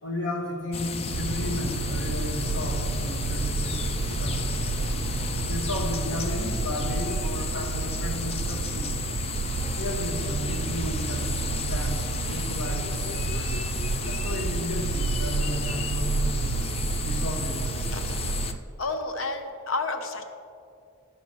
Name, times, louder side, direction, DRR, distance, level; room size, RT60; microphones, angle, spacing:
voice 1, 0.0-4.5 5.5-9.0 9.7-13.6 14.1-16.5 17.0-17.9, left 1 dB, 55° left, 0 dB, 1.6 m, -34 dB
sound 1, 0.7-18.5, left 5 dB, 30° left, 0.3 m, -33 dB
sound 2, 1.1-7.2, equal, 10° left, 2.1 m, -40 dB
sound 3, 1.1-18.6, right 4 dB, 90° right, 0.4 m, -30 dB
voice 2, 17.9-18.3 18.8-20.2, left 3 dB, 70° left, 6 dB, 0.8 m, -31 dB
12.0 x 11.0 x 3.1 m, 2.5 s
head